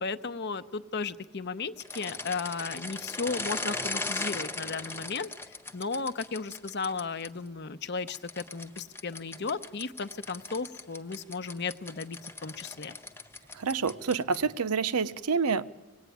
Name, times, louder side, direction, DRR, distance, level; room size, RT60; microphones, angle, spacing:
voice 1, 0.0-5.3 5.7-12.9, left 4 dB, 50° left, 0.7 m, -35 dB
sound 1, 1.8-7.3 8.1-14.6, left 3 dB, 10° left, 0.7 m, -38 dB
voice 2, 13.5-15.6, right 5 dB, 85° right, 0.8 m, -28 dB
25.0 x 19.0 x 9.3 m
head